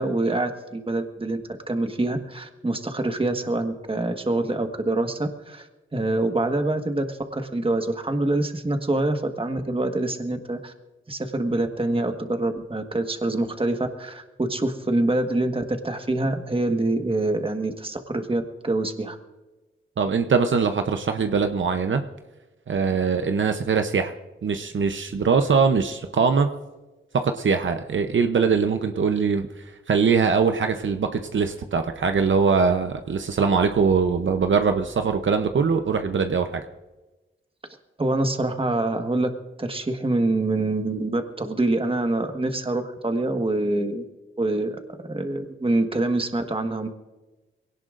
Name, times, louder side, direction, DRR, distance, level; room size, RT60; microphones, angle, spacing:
voice 1, 0.0-1.4 1.7-10.7 11.1-19.2 38.0-39.3 39.6-44.0 44.4-44.8 45.1-46.9, right 2 dB, 25° right, 5 dB, 1.4 m, -25 dB
voice 2, 20.0-22.0 22.7-24.1 24.4-26.5 27.1-29.5 29.9-36.6, right 5 dB, 70° right, 6 dB, 0.8 m, -22 dB
23.0 x 17.5 x 2.5 m, 1.1 s
wide cardioid pair, 90°, 21 cm